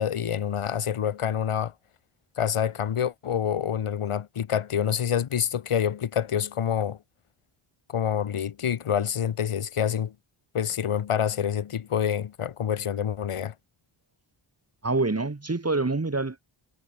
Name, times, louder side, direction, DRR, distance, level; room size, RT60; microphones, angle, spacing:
voice 1, 0.0-1.7 2.4-7.0 7.9-10.1 10.5-13.5, left 8 dB, 85° left, 5.2 m, -27 dB
voice 2, 14.8-16.4, right 3 dB, 30° right, 6.5 m, -26 dB
cardioid pair, 65°, 50 cm